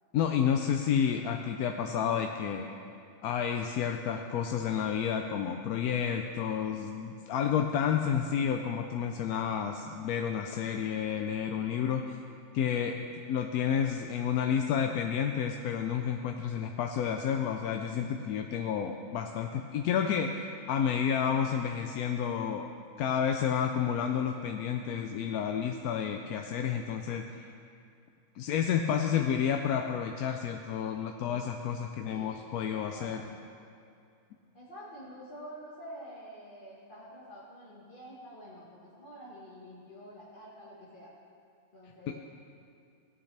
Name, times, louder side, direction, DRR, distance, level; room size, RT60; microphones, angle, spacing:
voice 1, 0.1-2.7 3.2-12.2 12.5-13.0 13.3-22.7 23.0-27.2 28.4-33.2 42.1-42.2, left 8 dB, 80° left, 4 dB, 1.0 m, -30 dB
voice 2, 32.0-33.4 34.5-41.1 41.7-42.2, equal, 35° left, -7 dB, 1.6 m, -48 dB
16.5 x 9.0 x 3.3 m, 2.5 s
omnidirectional pair, 1.6 m